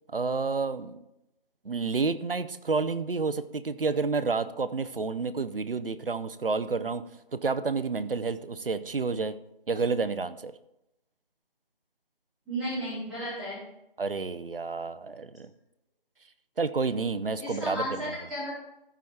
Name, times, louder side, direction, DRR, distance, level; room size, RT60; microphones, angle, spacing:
voice 1, 0.1-1.0 1.6-7.0 7.3-9.4 9.7-10.5 14.0-15.5 16.6-18.2, right 4 dB, 70° right, 14 dB, 0.7 m, -30 dB
voice 2, 12.5-13.6 17.4-18.5, equal, ahead, -10 dB, 0.9 m, -33 dB
14.5 x 5.0 x 4.3 m, 0.86 s
figure-of-eight pair, 155°, 29 cm